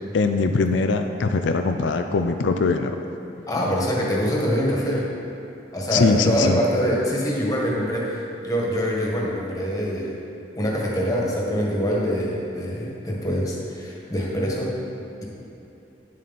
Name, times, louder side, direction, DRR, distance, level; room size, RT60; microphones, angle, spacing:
voice 1, 0.1-3.0 5.9-6.6, left 4 dB, 90° left, 6 dB, 0.5 m, -21 dB
voice 2, 3.5-5.1 5.7-10.2 10.6-14.8, equal, 20° left, -4 dB, 1.7 m, -24 dB
10.0 x 7.5 x 4.2 m, 2.9 s
head